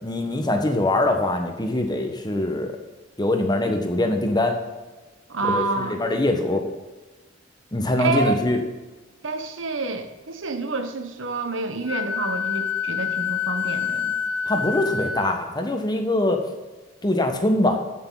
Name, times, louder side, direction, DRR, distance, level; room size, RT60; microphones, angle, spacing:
voice 1, 0.0-2.7 3.2-4.6 5.4-6.7 7.7-8.6 14.5-16.4 17.0-17.8, left 1 dB, 20° left, 5 dB, 1.2 m, -23 dB
voice 2, 5.3-6.0 8.0-8.4 9.2-14.2, right 3 dB, 80° right, 8 dB, 1.1 m, -28 dB
Wind instrument woodwind instrument, 11.9-15.4, left 7 dB, 70° left, 0.6 m, -27 dB
14.5 x 6.7 x 3.9 m, 1.2 s
head